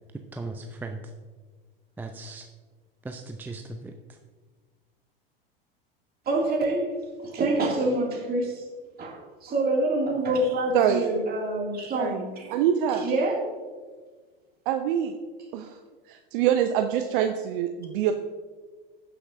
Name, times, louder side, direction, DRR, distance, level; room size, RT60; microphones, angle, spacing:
voice 1, 0.3-1.0 2.0-2.5 3.0-4.2, right 2 dB, 5° right, 4 dB, 0.5 m, -37 dB
voice 2, 6.3-8.6 9.0-12.5 12.9-13.4, right 2 dB, 30° right, 0 dB, 2.3 m, -26 dB
voice 3, 10.7-11.1 11.9-12.2 12.5-13.1 14.7-15.2 15.5-15.8 16.1-18.1, right 9 dB, 60° right, 7 dB, 0.6 m, -25 dB
15.5 x 5.9 x 2.6 m, 1.4 s
hypercardioid pair, 85°, 29 cm